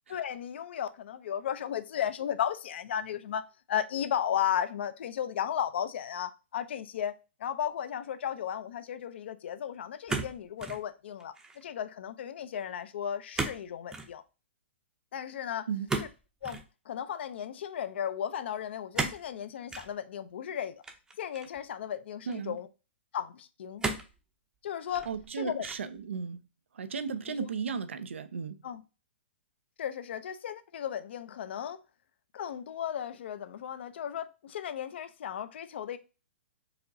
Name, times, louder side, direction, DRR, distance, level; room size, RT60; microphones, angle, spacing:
voice 1, 0.1-14.2 15.1-15.7 16.0-16.1 16.4-16.6 16.9-20.7 21.2-22.7 23.1-23.9 24.6-25.1 25.3-25.6 27.3-27.5 28.6-28.8 29.8-31.8 32.3-36.0, left 9 dB, 65° left, 0.5 m, -35 dB
sound 1, 10.1-10.8 11.2-11.6 13.3-13.6 13.9-14.1 15.9-16.7 18.9-19.3 19.7-19.9 20.8-21.6 22.3-22.4 23.8-24.2 24.8-25.3 25.6-26.0, right 3 dB, 10° right, 0.6 m, -34 dB
voice 2, 25.1-26.4 26.7-28.6, right 6 dB, 80° right, 0.5 m, -35 dB
4.8 x 3.0 x 2.6 m
hypercardioid pair, 130°, 7 cm